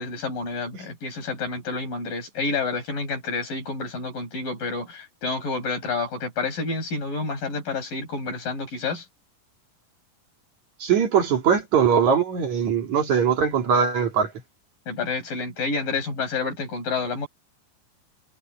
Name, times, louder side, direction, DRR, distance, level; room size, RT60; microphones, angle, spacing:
voice 1, 0.0-9.1 14.9-17.3, left 4 dB, 70° left, 9.8 m, -29 dB
voice 2, 10.8-14.3, right 7 dB, 55° right, 3.3 m, -21 dB
omnidirectional pair, 4.1 m